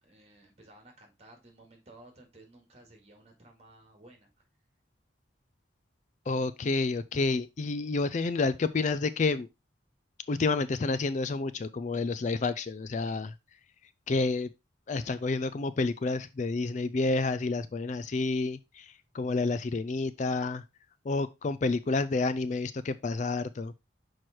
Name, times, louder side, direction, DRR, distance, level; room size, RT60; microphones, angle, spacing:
voice 1, 0.0-4.3, right 2 dB, 35° right, 2.2 m, -55 dB
voice 2, 6.3-9.5 10.3-13.3 14.1-14.5 14.9-20.6 21.0-23.7, left 3 dB, 40° left, 0.4 m, -29 dB
6.2 x 4.7 x 4.3 m
head